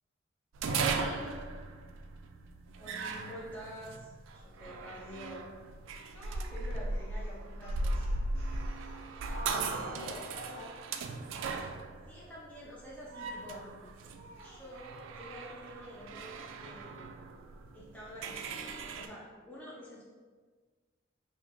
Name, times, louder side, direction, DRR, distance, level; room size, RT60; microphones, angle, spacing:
sound 1, 0.5-19.1, right 3 dB, 70° right, 0.3 m, -38 dB
voice 1, 0.6-1.4 9.3-10.7 19.7-19.9, left 1 dB, 80° left, -7 dB, 1.4 m, -43 dB
voice 2, 2.8-5.4 6.1-8.1 12.1-13.9 14.4-17.5 17.7-20.0, equal, 10° left, -7 dB, 0.6 m, -48 dB
Speech, 6.9-11.2 13.2-13.6 14.1-15.0, right 1 dB, 30° right, 1.3 m, -57 dB
5.0 x 2.7 x 2.6 m, 1.5 s
head